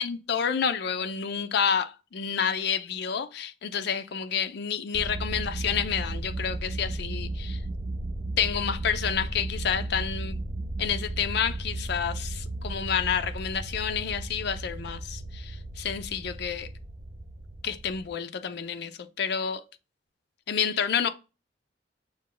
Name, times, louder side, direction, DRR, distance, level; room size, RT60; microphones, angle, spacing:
voice 1, 0.0-7.6 8.4-10.4 10.8-16.7 17.6-19.6 20.5-21.1, left 7 dB, 60° left, 0.5 m, -29 dB
sound 1, 4.9-18.1, right 2 dB, 40° right, 0.4 m, -35 dB
6.2 x 2.2 x 3.8 m
head